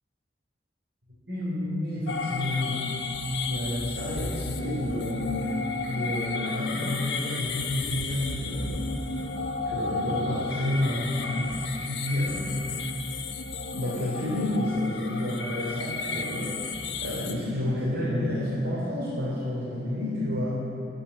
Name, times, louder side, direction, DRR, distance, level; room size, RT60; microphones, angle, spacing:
voice 1, 1.3-2.9 3.5-5.5 5.9-8.9 9.6-12.8 13.6-16.6 17.0-20.5, left 1 dB, 85° right, -8 dB, 3.4 m, -30 dB
sound 1, 2.1-17.3, left 4 dB, 85° left, 1.0 m, -33 dB
sound 2, 7.5-12.6, left 1 dB, 35° right, 3.2 m, -44 dB
11.0 x 10.0 x 8.5 m, 2.7 s
head